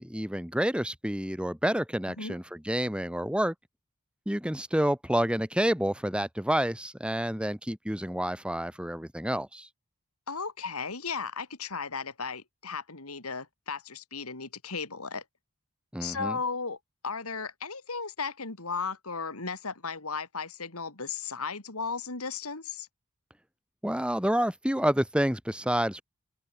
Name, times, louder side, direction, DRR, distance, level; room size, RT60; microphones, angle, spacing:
voice 1, 0.0-3.5 4.2-9.7 15.9-16.4 23.8-26.0, equal, 5° right, 3.3 m, -29 dB
voice 2, 10.3-15.2 16.0-16.8 17.0-22.9, left 5 dB, 85° left, 3.1 m, -35 dB
open air
head